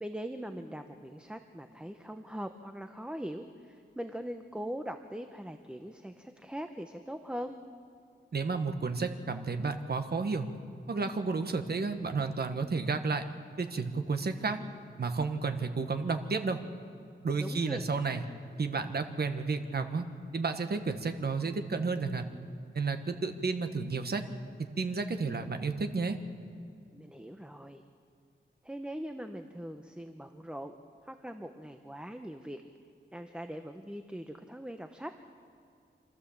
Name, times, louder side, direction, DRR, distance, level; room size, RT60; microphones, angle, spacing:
voice 1, 0.0-7.6 17.4-17.9 26.9-27.8 28.6-30.8 31.0-32.6 33.1-35.2, equal, 5° right, 7 dB, 0.8 m, -41 dB
voice 2, 8.3-10.5 10.9-13.2 13.6-14.6 15.0-16.6 17.2-18.2 18.6-20.0 20.3-22.3 22.7-24.2 24.6-26.2, right 4 dB, 55° right, 7 dB, 1.4 m, -32 dB
27.0 x 14.0 x 7.2 m, 2.5 s
wide cardioid pair, 105°, 20 cm